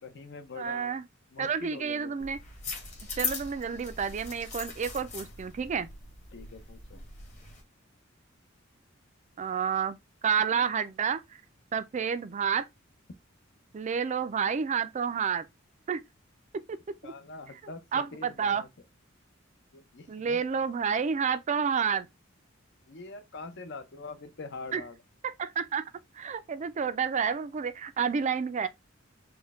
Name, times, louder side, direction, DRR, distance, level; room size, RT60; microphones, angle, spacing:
voice 1, 0.0-0.9 1.3-2.3 6.3-7.0 17.0-18.7 19.7-20.4 22.9-25.0, left 3 dB, 60° left, 0.7 m, -44 dB
voice 2, 0.6-1.0 1.4-2.4 3.2-5.9 9.4-10.0 10.2-11.2 11.7-12.7 13.7-15.5 15.9-16.0 16.7-16.8 17.0-17.1 17.9-18.6 20.1-22.1 24.7-24.8 25.2-25.9 26.1-28.7, right 6 dB, 35° right, 0.4 m, -29 dB
sound 1, 2.2-7.6, left 5 dB, 35° left, 1.4 m, -40 dB
4.4 x 2.2 x 3.3 m
head